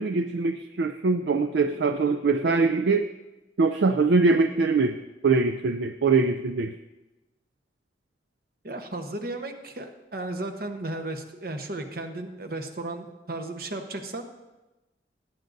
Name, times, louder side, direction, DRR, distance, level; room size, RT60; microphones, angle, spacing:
voice 1, 0.0-3.1 3.6-5.0 5.2-6.7, right 4 dB, 70° right, 8 dB, 0.4 m, -23 dB
voice 2, 8.6-14.3, right 2 dB, 55° right, 6 dB, 1.0 m, -34 dB
17.0 x 9.0 x 2.6 m, 1.1 s
head